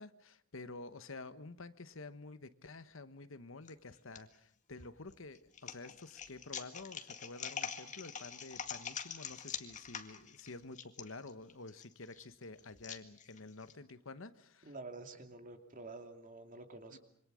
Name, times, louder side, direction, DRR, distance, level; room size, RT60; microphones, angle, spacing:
voice 1, 0.0-14.7 16.9-17.0, left 3 dB, 70° left, 12 dB, 1.2 m, -50 dB
sound 1, 3.6-4.2 4.8-13.7, left 7 dB, 35° left, 2.0 m, -45 dB
voice 2, 14.6-17.0, right 3 dB, 40° right, 6 dB, 2.7 m, -49 dB
26.5 x 24.5 x 6.3 m, 0.67 s
head